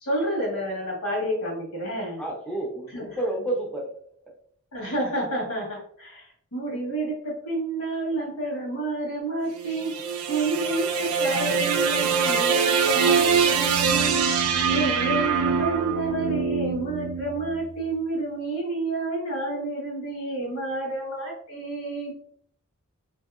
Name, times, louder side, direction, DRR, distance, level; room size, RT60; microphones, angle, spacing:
voice 1, 0.0-2.2 2.9-3.1 4.7-9.9 10.3-22.1, right 2 dB, 85° left, -2 dB, 1.3 m, -29 dB
voice 2, 2.2-3.9 14.5-14.7, right 1 dB, 5° left, -1 dB, 0.4 m, -30 dB
sound 1, 9.5-17.8, right 6 dB, 70° right, 0.4 m, -24 dB
2.8 x 2.7 x 2.3 m, 0.64 s
head